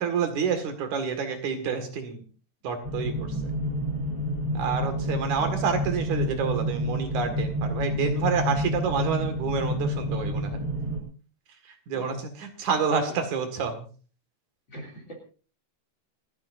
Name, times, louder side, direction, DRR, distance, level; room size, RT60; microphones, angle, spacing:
voice 1, 0.0-2.2 2.6-3.3 4.5-10.6 11.9-13.8, right 6 dB, 85° right, 6 dB, 3.4 m, -28 dB
sound 1, 2.8-11.0, equal, 15° right, 2.7 m, -29 dB
voice 2, 14.7-15.1, right 2 dB, 40° left, -1 dB, 3.5 m, -38 dB
28.0 x 10.0 x 2.6 m, 0.39 s
omnidirectional pair, 3.3 m